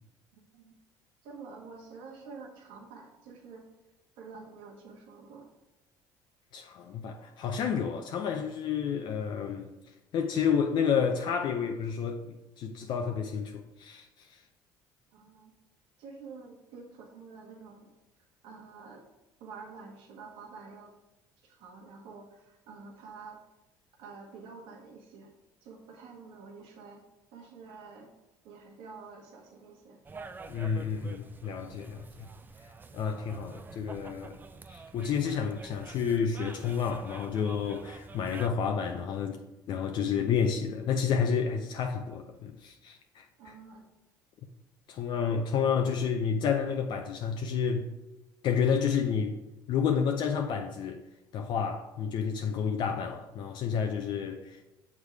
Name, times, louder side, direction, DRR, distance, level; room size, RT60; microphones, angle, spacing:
voice 1, 0.3-0.7 1.2-3.6 4.2-5.5 15.1-15.5 16.0-17.9 18.4-19.0 19.4-20.9 21.4-23.4 24.0-25.3 25.6-27.0 27.3-28.1 28.4-30.0 43.4-43.9, right 4 dB, 80° right, 1.2 m, -48 dB
voice 2, 6.5-9.7 10.1-14.4 30.5-32.3 32.9-34.4 34.7-39.4 39.7-43.2 44.9-47.8 48.4-49.4 49.7-51.0 51.3-54.6, left 7 dB, 60° left, 0.5 m, -30 dB
sound 1, 30.1-38.5, right 4 dB, 20° right, 0.4 m, -48 dB
6.5 x 3.5 x 4.6 m
supercardioid pair, 90°, 9 cm